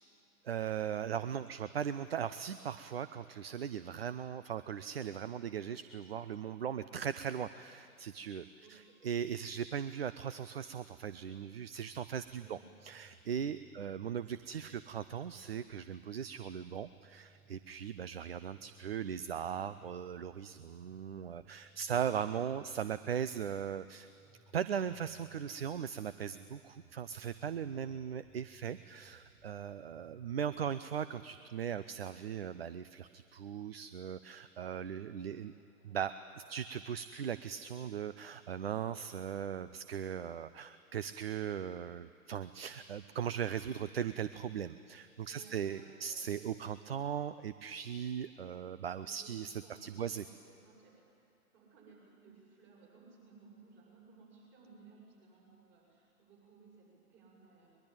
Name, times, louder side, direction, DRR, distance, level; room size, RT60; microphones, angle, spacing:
voice 1, 0.4-24.1 24.5-35.5 35.8-50.2, right 8 dB, 40° right, 14 dB, 0.6 m, -39 dB
voice 2, 8.6-9.0 12.3-12.7 13.7-13.9 14.4-14.6 35.1-36.0 36.4-36.6 45.3-46.2 49.0-51.1 51.5-57.8, right 4 dB, 25° right, -2 dB, 7.7 m, -60 dB
sound 1, 11.7-30.7, right 4 dB, 5° right, 1.1 m, -64 dB
22.0 x 21.5 x 8.9 m, 2.5 s
figure-of-eight pair, 135°, 45 cm